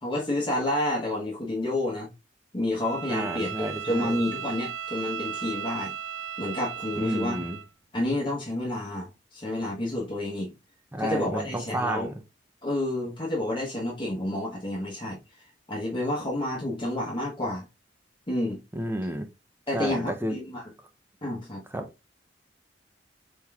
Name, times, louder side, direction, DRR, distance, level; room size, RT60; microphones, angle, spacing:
voice 1, 0.0-2.1 2.5-5.9 6.4-7.5 7.9-10.5 11.0-12.1 12.6-15.2 15.7-17.6 18.3-18.6 19.7-20.6 21.2-21.6, left 1 dB, 25° left, 1.0 m, -29 dB
Bowed string instrument, 2.8-7.7, right 8 dB, 85° right, 0.4 m, -36 dB
voice 2, 3.1-4.2 7.0-7.6 10.9-12.1 18.7-19.3 19.7-20.4 21.7-21.9, right 1 dB, 10° right, 0.5 m, -31 dB
4.4 x 3.7 x 2.3 m
head